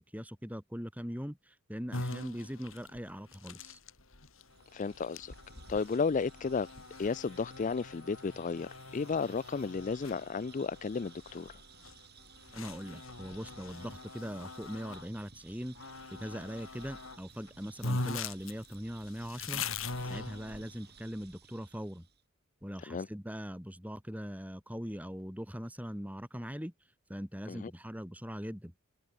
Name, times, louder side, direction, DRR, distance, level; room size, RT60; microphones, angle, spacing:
voice 1, 0.0-3.8 12.5-19.6 20.0-22.1 22.6-26.7 27.1-28.7, equal, 5° right, 4.7 m, -41 dB
sound 1, 1.9-15.1 15.8-17.2 17.5-17.6 17.8-20.9, left 3 dB, 65° left, 4.2 m, -42 dB
sound 2, 4.5-22.2, right 6 dB, 50° right, 7.1 m, -58 dB
voice 2, 4.7-5.3 5.7-6.7 7.0-11.6 22.9-23.1 27.5-27.7, left 5 dB, 35° left, 0.4 m, -33 dB
open air
head